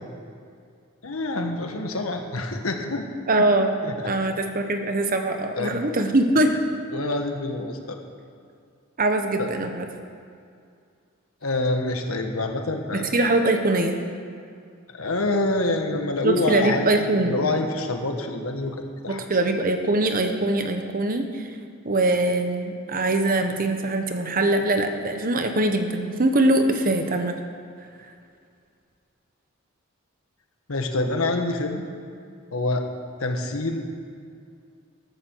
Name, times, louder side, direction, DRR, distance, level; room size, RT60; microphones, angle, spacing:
voice 1, 1.0-3.0 3.4-3.5 3.8-3.9 4.2-4.3 5.6-5.8 6.9-8.0 9.4-9.5 11.4-13.1 14.9-19.2 30.7-31.9 32.5-32.8 33.2-33.9, left 2 dB, 85° left, 4 dB, 1.4 m, -26 dB
voice 2, 3.3-3.7 4.0-6.5 9.0-9.9 12.9-14.0 16.2-17.4 19.1-21.5 21.8-27.4, right 2 dB, 45° right, 6 dB, 1.1 m, -22 dB
14.0 x 13.0 x 4.6 m, 2.3 s
head